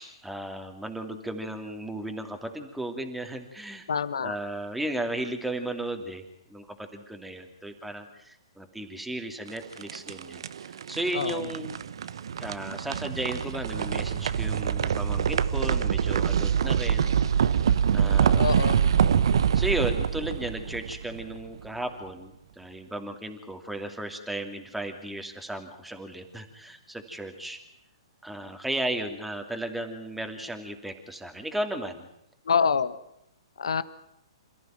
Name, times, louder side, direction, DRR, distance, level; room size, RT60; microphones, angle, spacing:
voice 1, 0.0-3.9 4.2-6.2 6.5-11.7 12.4-17.6 17.9-18.7 19.5-27.6 28.2-32.1, right 1 dB, 5° right, 4 dB, 2.8 m, -35 dB
voice 2, 3.9-4.3 11.1-11.4 18.4-18.8 32.5-32.9 33.6-33.8, left 6 dB, 75° left, 14 dB, 1.4 m, -26 dB
sound 1, 9.5-21.6, right 8 dB, 65° right, 1.0 m, -25 dB
27.5 x 14.5 x 9.2 m, 0.78 s
hypercardioid pair, 125°, 3 cm